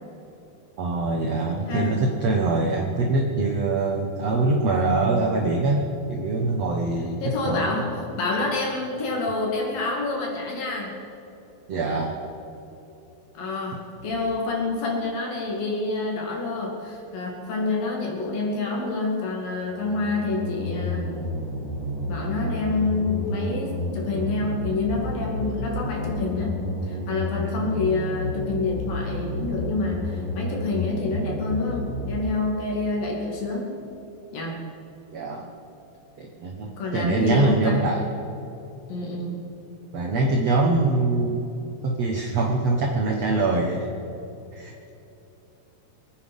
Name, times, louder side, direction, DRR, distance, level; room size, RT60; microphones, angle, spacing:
voice 1, 0.8-7.2 7.4-7.8 11.7-12.2 35.1-35.5 36.2-38.0 39.9-41.4 41.8-43.9 44.5-44.9, right 3 dB, 70° right, 0 dB, 1.5 m, -23 dB
voice 2, 7.2-10.9 13.3-21.1 22.1-33.7 34.3-34.7 36.8-37.9 38.9-39.5, left 3 dB, 60° left, -2 dB, 4.0 m, -27 dB
sound 1, 14.0-14.1 19.6-32.2, left 1 dB, 30° right, 2.5 m, -31 dB
24.5 x 9.5 x 5.5 m, 2.9 s
omnidirectional pair, 4.8 m